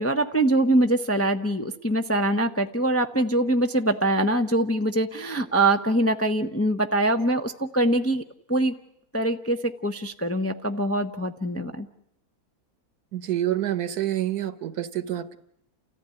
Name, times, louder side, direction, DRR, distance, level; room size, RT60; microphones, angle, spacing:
voice 1, 0.0-8.2 8.5-8.8 9.1-11.9, right 1 dB, 15° left, 6 dB, 0.6 m, -23 dB
voice 2, 13.1-15.4, right 12 dB, 75° right, 13 dB, 1.6 m, -27 dB
29.5 x 14.5 x 9.6 m, 0.76 s
omnidirectional pair, 1.7 m